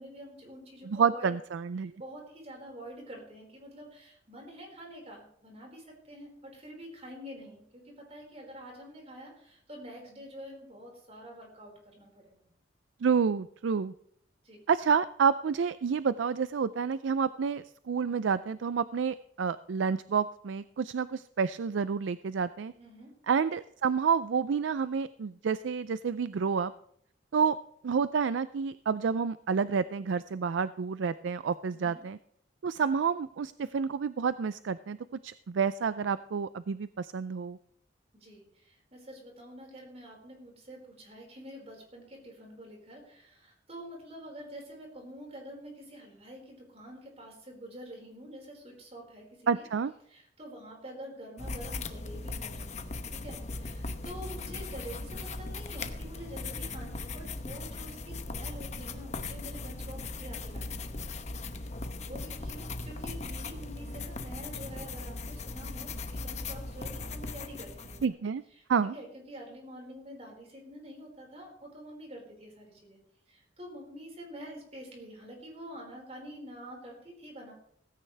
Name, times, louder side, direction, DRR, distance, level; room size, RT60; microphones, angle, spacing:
voice 1, 0.0-1.3 2.0-12.5 14.4-14.6 22.8-23.1 31.7-32.0 38.1-49.7 50.0-61.1 61.5-61.7 62.1-68.2 68.5-68.6 68.9-73.0 73.3-77.5, equal, 35° right, 0 dB, 5.0 m, -47 dB
voice 2, 0.9-1.9 13.0-13.9 14.7-22.7 23.3-26.7 27.3-27.6 27.8-32.2 32.6-35.0 35.2-37.6 49.5-49.9 68.0-68.4 68.7-68.9, right 6 dB, 85° right, 15 dB, 0.4 m, -29 dB
sound 1, 51.4-68.1, left 3 dB, 40° left, 1.0 m, -38 dB
17.0 x 15.5 x 3.4 m, 0.67 s
head